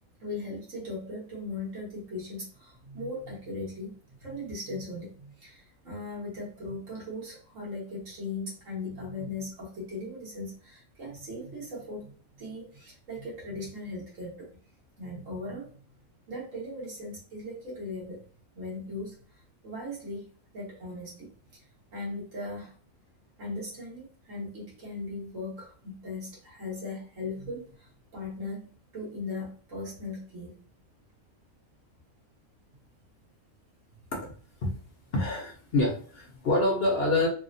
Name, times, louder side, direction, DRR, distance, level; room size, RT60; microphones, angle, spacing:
voice 1, 0.2-3.9 4.2-12.1 12.4-14.5 15.0-15.7 16.3-18.2 18.6-19.2 19.6-20.3 20.5-21.6 21.9-22.7 23.4-28.7 28.9-30.6, left 2 dB, 65° right, -5 dB, 1.7 m, -38 dB
voice 2, 35.1-37.3, left 2 dB, 55° left, -1 dB, 0.8 m, -26 dB
3.4 x 2.2 x 2.6 m, 0.43 s
omnidirectional pair, 1.5 m